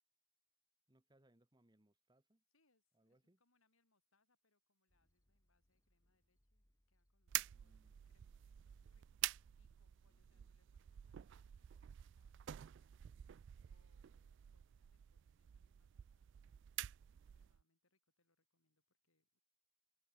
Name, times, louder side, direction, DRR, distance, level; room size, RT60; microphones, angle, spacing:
voice 1, 0.9-2.4 2.9-3.4 7.5-8.0 10.0-10.5, right 1 dB, 20° right, 1.3 m, -74 dB
voice 2, 2.5-19.4, left 3 dB, 75° left, 5.5 m, -85 dB
sound 1, 4.9-10.3, equal, 15° left, 2.7 m, -79 dB
sound 2, 7.3-17.6, right 15 dB, 55° right, 0.3 m, -48 dB
head